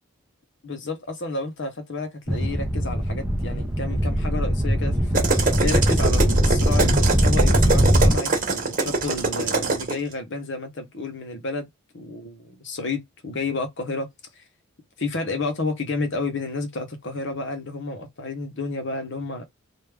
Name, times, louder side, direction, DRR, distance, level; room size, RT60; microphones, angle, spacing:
voice 1, 0.6-11.7 11.9-14.1 14.4-14.5 15.0-19.5, left 3 dB, 55° left, 0.9 m, -31 dB
sound 1, 2.3-8.2, equal, 5° right, 0.7 m, -21 dB
sound 2, 5.1-10.0, right 3 dB, 40° right, 1.2 m, -24 dB
3.3 x 2.4 x 3.4 m
head